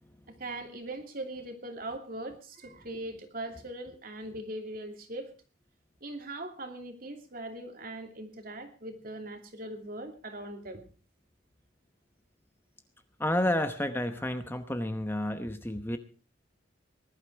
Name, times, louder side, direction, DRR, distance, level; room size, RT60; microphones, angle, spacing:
voice 1, 0.3-5.3 6.0-10.8, right 1 dB, 45° right, 5 dB, 2.8 m, -40 dB
voice 2, 13.2-16.0, left 1 dB, 10° left, 8 dB, 0.9 m, -30 dB
19.5 x 12.0 x 4.6 m, 0.36 s
head